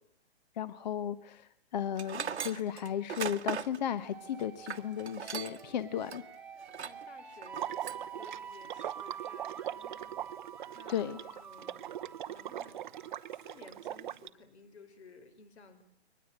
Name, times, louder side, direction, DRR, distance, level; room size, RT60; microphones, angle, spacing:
voice 1, 0.6-6.2 10.9-11.2, left 9 dB, 40° left, 14 dB, 1.0 m, -35 dB
Tools, 2.0-5.7 6.1-6.2 6.7-7.0 7.4-8.1, right 7 dB, 85° right, 1.5 m, -39 dB
sound 1, 4.0-13.7, right 7 dB, 5° right, 1.0 m, -48 dB
voice 2, 6.8-10.2 10.7-11.9 12.3-12.8 13.3-15.8, left 4 dB, 75° left, 10 dB, 5.1 m, -56 dB
Water / Liquid, 7.5-14.3, right 11 dB, 45° right, 0.8 m, -41 dB
23.0 x 20.0 x 8.7 m, 0.76 s
hypercardioid pair, 155°, 33 cm